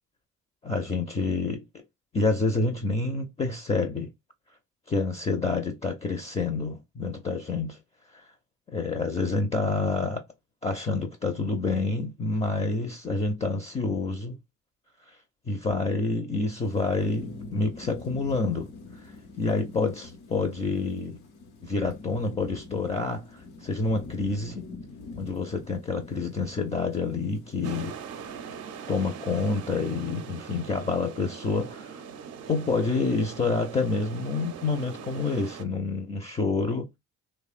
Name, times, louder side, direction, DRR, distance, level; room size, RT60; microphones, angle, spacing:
voice 1, 0.6-1.6 2.1-4.1 4.9-7.8 8.1-8.2 8.7-10.2 10.6-14.4 15.1-15.2 15.5-18.7 19.0-21.2 21.6-24.7 25.2-27.9 28.9-32.0 32.5-37.0, left 3 dB, 20° left, 0.4 m, -28 dB
Thunderstorm / Rain, 16.5-28.8, left 3 dB, 85° left, 0.8 m, -45 dB
sound 1, 27.6-35.6, right 7 dB, 55° right, 0.5 m, -42 dB
3.0 x 2.1 x 2.3 m
cardioid pair, 90°, 30 cm